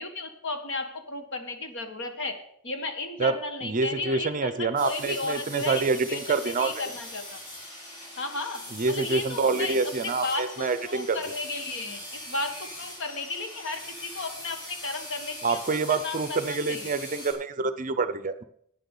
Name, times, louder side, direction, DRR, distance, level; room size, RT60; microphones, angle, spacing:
voice 1, 0.0-2.4 2.6-6.2 6.4-7.4 8.2-16.9, left 3 dB, 60° left, 6 dB, 1.5 m, -34 dB
voice 2, 3.6-6.7 8.7-11.2 15.4-18.4, right 4 dB, 35° right, 12 dB, 0.6 m, -27 dB
sound 1, 4.8-17.3, left 1 dB, 35° left, 3.8 m, -41 dB
9.1 x 7.7 x 7.2 m, 0.68 s
head